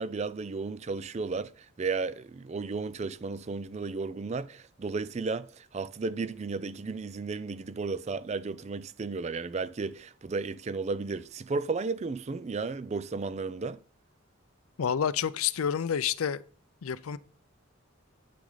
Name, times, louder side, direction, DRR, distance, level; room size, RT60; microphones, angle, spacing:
voice 1, 0.0-13.8, right 4 dB, 30° right, 0.4 m, -34 dB
voice 2, 14.8-16.4 16.8-17.2, left 8 dB, 90° left, 0.5 m, -29 dB
8.6 x 6.1 x 3.9 m
head